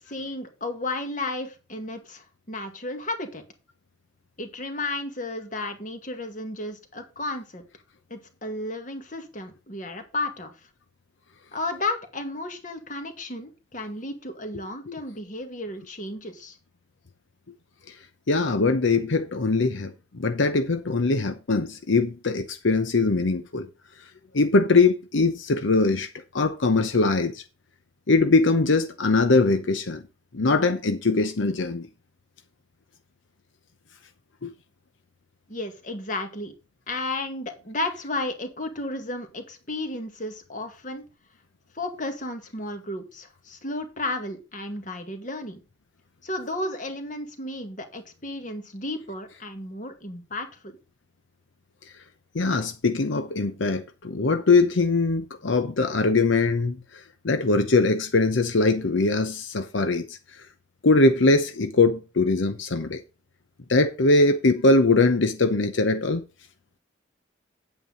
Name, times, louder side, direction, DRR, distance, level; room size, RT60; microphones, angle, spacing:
voice 1, 0.1-3.4 4.4-7.6 8.1-10.5 11.5-16.6 35.5-36.5 36.9-41.0 41.7-45.6 46.2-50.7, left 2 dB, 40° left, 2.0 m, -33 dB
voice 2, 18.3-23.7 24.3-26.1 26.3-27.4 28.1-30.0 30.3-31.9 34.4-34.5 52.3-60.2 60.8-63.0 63.7-66.2, left 3 dB, 80° left, 0.8 m, -22 dB
9.2 x 8.6 x 3.9 m
head